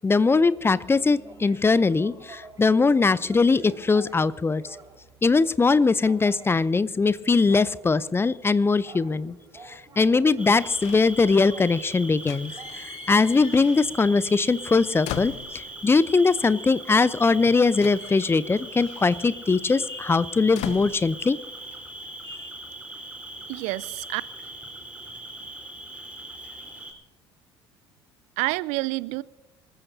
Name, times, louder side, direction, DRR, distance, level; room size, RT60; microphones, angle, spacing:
voice 1, 0.0-4.6 5.2-9.4 10.0-21.4 22.2-22.4, left 4 dB, 15° left, 0.6 m, -21 dB
sound 1, 0.6-12.7, right 3 dB, 25° right, 4.8 m, -50 dB
Cricket, 10.4-26.9, right 1 dB, 10° right, 4.0 m, -40 dB
sound 2, 10.8-11.8 12.1-14.1 14.4-16.0 17.0-17.1 17.3-21.7 22.0-22.5, left 13 dB, 55° left, 0.8 m, -41 dB
voice 2, 23.5-24.2 28.4-29.2, right 22 dB, 55° right, 0.4 m, -28 dB
26.5 x 14.0 x 2.8 m
figure-of-eight pair, 60°, 14 cm